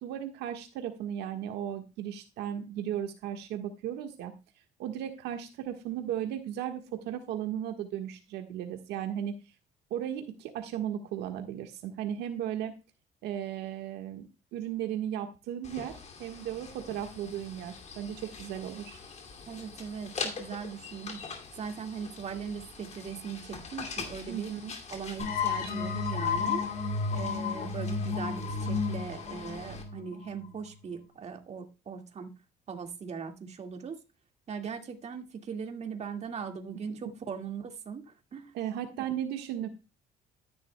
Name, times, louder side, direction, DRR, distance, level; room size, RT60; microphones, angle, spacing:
voice 1, 0.0-4.3 4.8-9.4 9.9-12.7 13.2-19.0 24.3-24.7 38.5-39.7, right 10 dB, 85° right, 5 dB, 1.4 m, -36 dB
sound 1, 15.6-29.8, left 5 dB, 40° left, 2.4 m, -44 dB
voice 2, 19.5-21.2 21.6-24.5 24.9-26.6 27.1-32.3 32.7-34.0 34.5-38.5, right 6 dB, 40° right, 5 dB, 1.9 m, -39 dB
sound 2, 25.2-30.7, left 5 dB, 55° left, 4.7 m, -32 dB
13.0 x 10.5 x 2.2 m, 0.28 s
cardioid pair, 110°, 17 cm